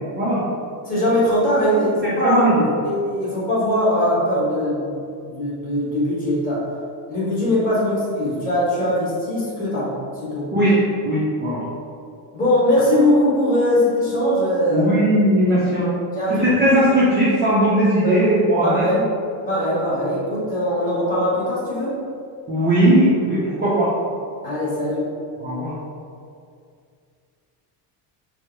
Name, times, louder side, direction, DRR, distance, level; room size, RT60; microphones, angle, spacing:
voice 1, 0.8-2.5 2.8-6.6 7.1-9.9 10.2-10.5 12.3-14.9 15.5-15.6 16.1-16.5 18.0-18.2 18.6-19.1 19.4-22.0 24.4-25.1, left 1 dB, 20° left, -9 dB, 1.3 m, -21 dB
voice 2, 2.0-2.7 10.5-10.8 11.0-11.6 14.7-15.9 16.4-18.8 22.5-23.9 25.4-25.7, right 1 dB, 20° right, -9 dB, 0.5 m, -18 dB
4.5 x 2.1 x 4.5 m, 2.3 s
cardioid pair, 165°, 47 cm